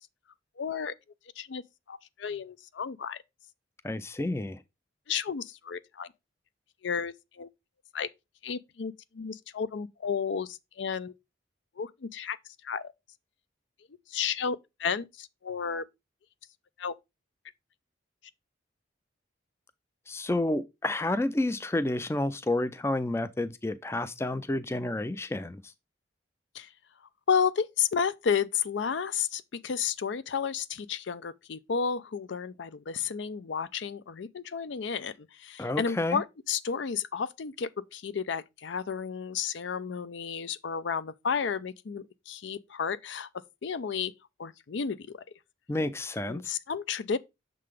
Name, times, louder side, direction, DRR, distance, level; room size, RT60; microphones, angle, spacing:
voice 1, 0.6-0.9 1.4-1.6 1.9-3.2 5.1-6.1 6.8-7.5 7.9-8.1 8.4-11.1 11.8-12.4 12.6-12.9 14.1-15.8 16.8-16.9 26.5-26.7 27.3-43.3 43.6-44.1 44.4-45.2 46.3-47.2, left 6 dB, 70° left, 0.5 m, -32 dB
voice 2, 3.8-4.6 20.1-25.6 35.6-36.2 45.7-46.5, left 2 dB, 15° left, 0.4 m, -30 dB
6.7 x 3.8 x 4.7 m
head